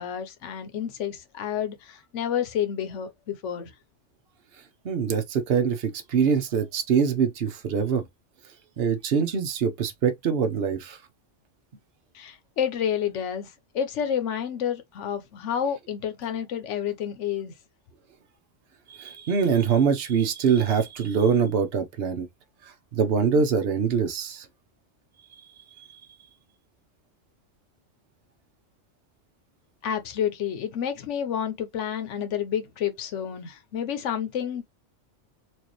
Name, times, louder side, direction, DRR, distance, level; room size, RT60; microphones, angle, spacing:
voice 1, 0.0-3.7 12.1-13.5 13.7-17.5 29.8-34.6, left 9 dB, 70° left, 1.1 m, -29 dB
voice 2, 4.8-8.0 8.8-11.0 18.9-22.3 22.9-24.4, right 6 dB, 55° right, 1.0 m, -24 dB
4.5 x 2.6 x 3.0 m
omnidirectional pair, 1.3 m